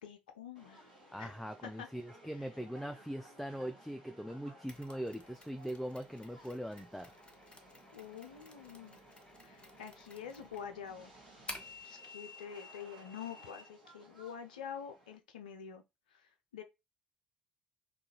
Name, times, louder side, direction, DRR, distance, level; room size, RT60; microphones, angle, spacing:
voice 1, 0.0-0.8 1.2-1.4 1.6-1.9 7.9-9.0 9.4-11.1 11.8-15.8 16.1-16.6, left 8 dB, 75° left, 0.4 m, -47 dB
Subway metro underground, 0.5-15.2, left 1 dB, 85° right, 0.9 m, -57 dB
voice 2, 1.1-7.1, equal, ahead, 0.3 m, -41 dB
Mechanisms, 4.7-11.9, left 2 dB, 20° left, 0.7 m, -53 dB
sound 1, 7.0-12.0, right 6 dB, 65° right, 0.9 m, -67 dB
2.7 x 2.3 x 2.9 m
figure-of-eight pair, 50°, 4 cm